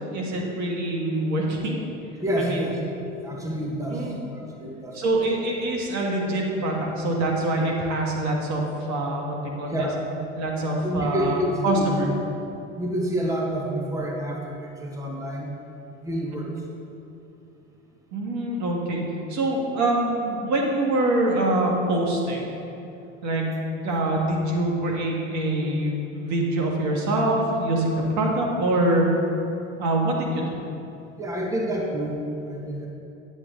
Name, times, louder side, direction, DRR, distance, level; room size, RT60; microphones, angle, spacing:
voice 1, 0.1-1.8 2.4-2.6 3.9-4.2 4.9-8.6 8.9-9.9 10.4-12.1 18.1-19.0 19.3-22.6 23.2-23.5 23.8-29.0 29.8-30.6, right 1 dB, 50° right, -1 dB, 1.8 m, -25 dB
voice 2, 2.2-2.8 3.2-5.0 9.7-10.0 10.8-12.0 12.8-15.5 16.0-16.5 31.2-32.9, equal, 10° right, -2 dB, 1.4 m, -28 dB
9.8 x 8.1 x 3.8 m, 2.8 s
hypercardioid pair, 80°, 37 cm